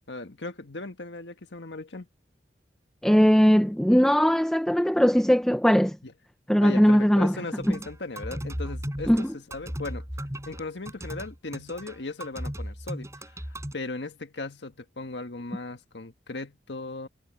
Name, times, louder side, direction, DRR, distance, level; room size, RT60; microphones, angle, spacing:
voice 1, 0.1-2.1 6.0-6.1 6.6-10.0 10.5-17.1, left 3 dB, 90° left, 1.6 m, -37 dB
voice 2, 3.0-6.0 6.5-7.3 7.7-7.8 9.1-9.3, equal, 5° left, 0.7 m, -20 dB
sound 1, 7.6-13.7, equal, 15° right, 5.3 m, -36 dB
head